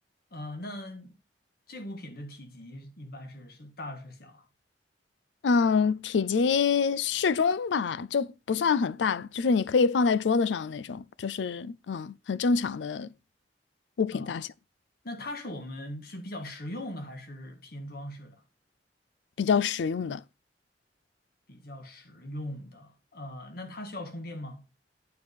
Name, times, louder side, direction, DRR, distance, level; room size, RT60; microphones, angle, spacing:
voice 1, 0.3-1.1 1.7-4.5 14.1-14.3 15.0-18.4 21.5-24.6, left 1 dB, 60° left, 1.7 m, -40 dB
voice 2, 5.4-13.1 14.0-14.5 19.4-20.2, left 5 dB, 85° left, 0.4 m, -26 dB
9.3 x 4.8 x 5.2 m
head